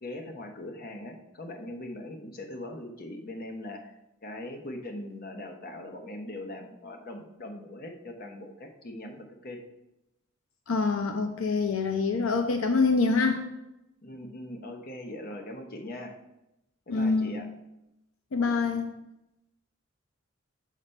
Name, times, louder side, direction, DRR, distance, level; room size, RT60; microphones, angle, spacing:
voice 1, 0.0-3.9 4.2-9.6 14.0-16.2 16.9-17.5, left 1 dB, 45° left, 4 dB, 0.9 m, -41 dB
voice 2, 10.7-13.4 16.9-17.4 18.3-18.9, left 4 dB, 75° left, 6 dB, 0.5 m, -25 dB
6.7 x 5.0 x 4.3 m, 0.89 s
head